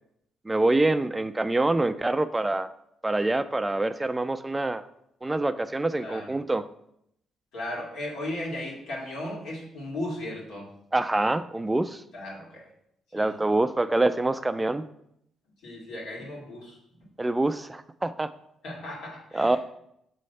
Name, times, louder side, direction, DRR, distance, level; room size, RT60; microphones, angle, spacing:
voice 1, 0.5-2.7 3.0-4.8 5.2-6.7 10.9-12.0 13.1-14.8 17.2-18.3 19.3-19.6, right 2 dB, 15° right, 12 dB, 0.3 m, -25 dB
voice 2, 6.0-6.3 7.5-10.7 12.1-12.7 13.1-13.3 15.6-16.8 18.6-19.6, left 1 dB, 85° left, -3 dB, 2.0 m, -36 dB
6.3 x 3.2 x 5.5 m, 0.76 s
cardioid pair, 90°, 0 cm